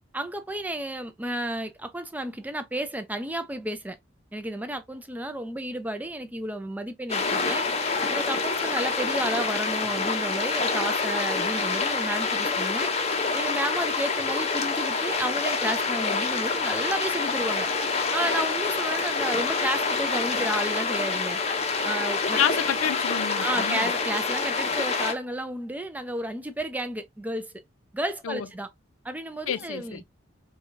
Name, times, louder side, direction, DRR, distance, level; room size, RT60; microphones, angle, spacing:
voice 1, 0.1-4.0 4.3-7.7 8.1-12.9 13.3-17.7 18.1-21.4 21.8-22.4 23.4-27.5 27.9-28.7 29.0-30.0, right 1 dB, 10° right, 0.4 m, -32 dB
sound 1, 7.1-25.1, left 4 dB, 30° left, 0.6 m, -27 dB
voice 2, 22.4-23.9 28.2-28.5 29.5-30.0, left 8 dB, 90° left, 0.4 m, -28 dB
4.7 x 2.3 x 2.5 m
head